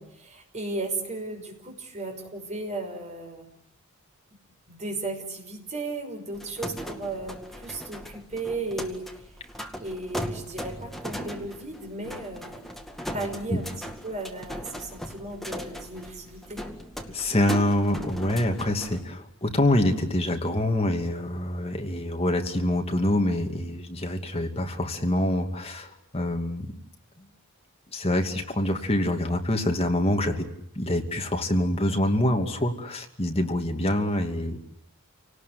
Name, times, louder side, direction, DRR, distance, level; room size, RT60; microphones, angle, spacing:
voice 1, 0.0-3.5 4.7-9.2 9.8-12.6 13.1-13.7 14.0-16.7, right 2 dB, 35° right, 3 dB, 5.5 m, -35 dB
sound 1, 6.3-19.0, equal, ahead, 2.1 m, -38 dB
voice 2, 17.1-26.7 27.2-27.3 27.9-30.5 30.7-34.6, left 1 dB, 30° left, 3 dB, 2.7 m, -25 dB
29.0 x 19.0 x 9.4 m, 0.75 s
head